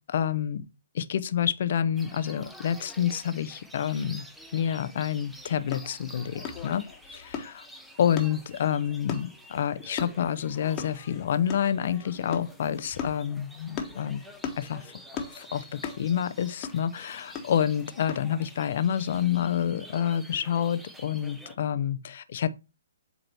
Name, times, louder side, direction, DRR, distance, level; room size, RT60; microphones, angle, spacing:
voice 1, 0.1-0.6 0.9-4.3 4.5-6.9 7.1-7.6 8.0-14.2 14.5-14.8 15.3-22.5, left 9 dB, 60° left, 0.6 m, -28 dB
sound 1, 1.9-21.5, equal, ahead, 0.7 m, -49 dB
sound 2, 5.7-18.4, left 6 dB, 30° left, 1.2 m, -40 dB
8.0 x 3.0 x 4.3 m
hypercardioid pair, 140°, 0 cm